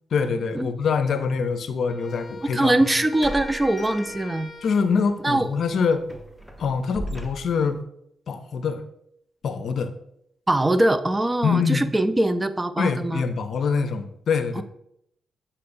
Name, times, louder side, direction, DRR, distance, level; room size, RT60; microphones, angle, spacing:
voice 1, 0.1-2.8 4.6-6.1 6.6-7.8 8.3-8.8 9.4-9.9 11.4-11.9 12.8-14.6, left 5 dB, 65° left, 9 dB, 0.6 m, -24 dB
Wind instrument woodwind instrument, 1.9-5.2, left 2 dB, 35° left, 1.2 m, -40 dB
sound 1, 2.1-2.2 3.2-4.7 5.1-5.2 5.7-7.8, equal, 5° right, 0.9 m, -38 dB
voice 2, 2.5-4.5 5.2-5.5 10.5-13.2 14.6-14.7, right 1 dB, 20° right, 12 dB, 0.5 m, -22 dB
8.4 x 4.3 x 2.6 m, 0.75 s
supercardioid pair, 50°, 0 cm